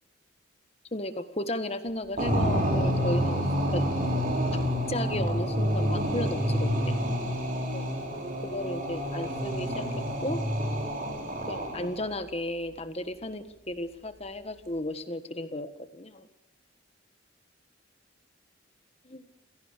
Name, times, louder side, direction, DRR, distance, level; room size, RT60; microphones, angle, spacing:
voice 1, 0.9-3.4 3.7-3.8 4.9-7.0 7.7-7.8 8.4-9.8 10.2-10.4 11.5-16.3 19.0-19.3, left 1 dB, 30° left, 10 dB, 1.5 m, -34 dB
sound 1, 2.2-12.1, equal, 45° right, 4.8 m, -28 dB
26.5 x 17.5 x 6.8 m, 0.81 s
head